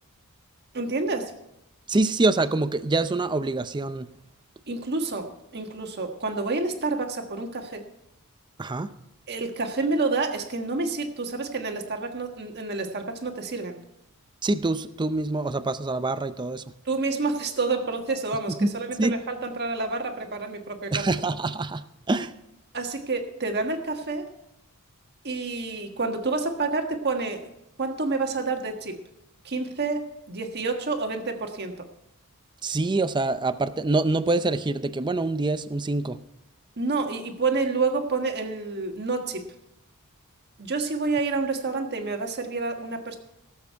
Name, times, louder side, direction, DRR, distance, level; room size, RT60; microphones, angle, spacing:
voice 1, 0.7-1.3 4.7-7.8 9.3-13.8 16.8-21.1 22.7-24.3 25.2-27.5 27.8-29.0 29.4-31.7 36.8-39.4 40.6-43.2, right 3 dB, 50° right, 4 dB, 1.5 m, -28 dB
voice 2, 1.9-4.1 8.6-8.9 14.4-16.6 18.6-18.7 19.0-19.1 20.9-22.3 32.6-36.2, right 2 dB, 20° right, 12 dB, 0.5 m, -25 dB
17.5 x 7.6 x 4.6 m, 0.85 s
head